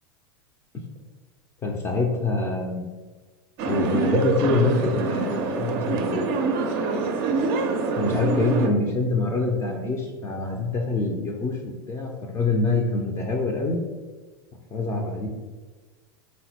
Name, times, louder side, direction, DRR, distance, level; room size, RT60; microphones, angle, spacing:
voice 1, 1.6-2.9 3.6-6.3 8.0-13.8 14.7-15.3, left 3 dB, 20° left, 0 dB, 0.4 m, -25 dB
sound 1, 3.6-8.7, right 4 dB, 45° right, 0.5 m, -25 dB
3.8 x 2.1 x 4.2 m, 1.3 s
figure-of-eight pair, 90°, 13 cm